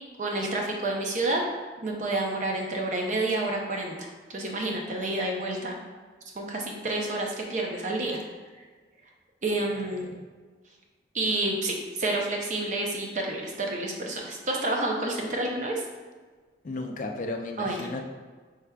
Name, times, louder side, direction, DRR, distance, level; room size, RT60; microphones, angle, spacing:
voice 1, 0.2-1.4 1.8-5.8 6.4-8.2 9.4-10.1 11.1-15.8 17.6-17.9, right 2 dB, 45° right, 0 dB, 0.6 m, -29 dB
voice 2, 16.6-18.0, left 2 dB, 45° left, 3 dB, 0.4 m, -34 dB
4.8 x 3.3 x 2.3 m, 1.4 s
head